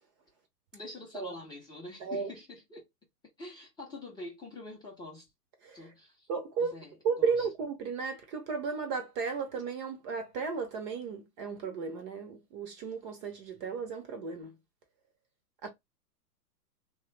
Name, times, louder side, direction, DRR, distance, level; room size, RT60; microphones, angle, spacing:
voice 1, 0.7-2.9 3.4-5.3 5.7-6.3 6.6-7.5, left 2 dB, 10° left, 0.6 m, -46 dB
voice 2, 6.3-6.8 7.0-14.5 15.6-15.7, right 5 dB, 30° right, 0.7 m, -34 dB
3.1 x 2.2 x 3.1 m
hypercardioid pair, 120°, 49 cm